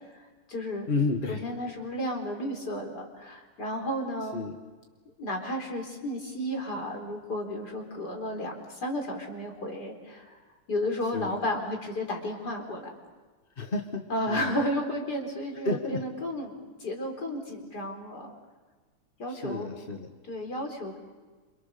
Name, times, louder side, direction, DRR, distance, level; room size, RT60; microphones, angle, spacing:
voice 1, 0.1-0.9 1.3-4.4 5.2-10.4 10.7-12.9 14.1-16.5 16.8-18.3 19.2-19.7 20.3-21.0, left 1 dB, 45° left, 3 dB, 4.7 m, -33 dB
voice 2, 0.9-1.4 4.3-4.5 11.1-11.3 13.6-14.5 15.6-16.0 19.3-20.1, left 3 dB, 30° left, 3 dB, 1.6 m, -31 dB
28.0 x 28.0 x 6.9 m, 1.4 s
omnidirectional pair, 2.4 m